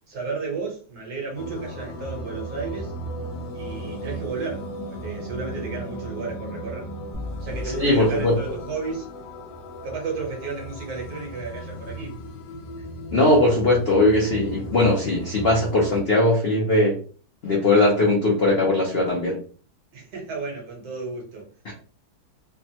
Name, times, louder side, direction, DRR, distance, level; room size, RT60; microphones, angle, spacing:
voice 1, 0.1-2.9 3.5-6.9 7.4-9.1 9.8-12.2 19.9-21.5, right 4 dB, 60° right, -1 dB, 1.5 m, -33 dB
sound 1, 1.3-16.0, right 1 dB, 80° left, 1.3 m, -36 dB
sound 2, 7.1-9.4, left 2 dB, 25° right, 0.4 m, -38 dB
voice 2, 7.8-8.4 13.1-17.0 17.4-19.4 21.6-21.7, left 2 dB, 60° left, -3 dB, 0.6 m, -19 dB
3.4 x 2.1 x 2.7 m, 0.40 s
omnidirectional pair, 1.9 m